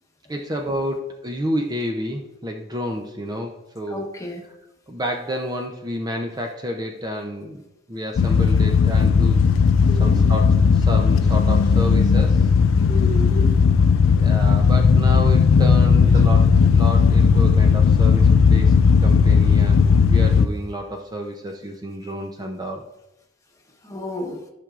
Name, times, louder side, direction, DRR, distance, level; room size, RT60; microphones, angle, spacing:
voice 1, 0.3-4.3 4.9-7.6 7.9-9.4 10.0-12.5 14.1-18.8 19.0-22.8, equal, 20° right, 2 dB, 0.5 m, -30 dB
voice 2, 3.9-4.4 9.8-10.2 12.9-13.6 22.0-22.1 23.8-24.4, left 1 dB, 15° left, 1 dB, 1.1 m, -31 dB
sound 1, 8.2-20.5, left 5 dB, 70° left, 0.4 m, -16 dB
13.5 x 6.0 x 2.5 m, 0.91 s
head